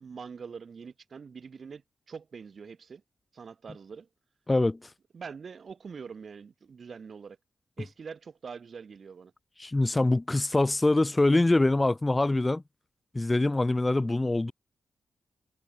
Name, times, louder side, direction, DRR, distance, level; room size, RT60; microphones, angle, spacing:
voice 1, 0.0-1.8 2.1-3.0 3.3-4.1 5.1-7.4 7.8-9.3, right 5 dB, 60° right, 6.0 m, -44 dB
voice 2, 4.5-4.9 9.6-12.6 13.1-14.5, left 2 dB, 20° left, 1.5 m, -24 dB
cardioid pair, 65°, 0 cm